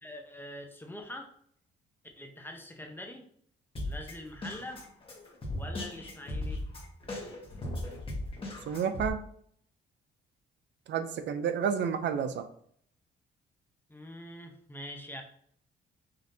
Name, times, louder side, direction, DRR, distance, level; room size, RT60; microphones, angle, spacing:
voice 1, 0.0-1.3 2.2-3.2 3.8-4.8 5.6-6.6 13.9-15.2, left 1 dB, 10° left, 3 dB, 0.7 m, -44 dB
Drum kit, 3.8-9.1, left 1 dB, 25° left, 1.1 m, -37 dB
voice 2, 8.7-9.2 10.9-12.5, right 7 dB, 65° right, 9 dB, 0.5 m, -30 dB
5.2 x 2.6 x 2.7 m, 0.63 s
cardioid pair, 90°, 20 cm